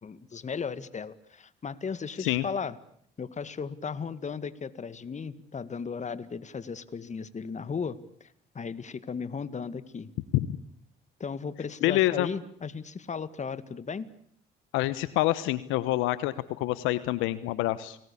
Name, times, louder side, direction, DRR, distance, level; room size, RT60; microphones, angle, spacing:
voice 1, 0.0-2.8 3.2-8.3 8.5-10.1 11.2-14.1, left 5 dB, 35° left, 14 dB, 2.0 m, -36 dB
voice 2, 11.8-12.3 14.7-18.0, left 16 dB, 75° left, 16 dB, 1.1 m, -27 dB
29.5 x 20.0 x 8.6 m, 0.67 s
supercardioid pair, 65°, 20 cm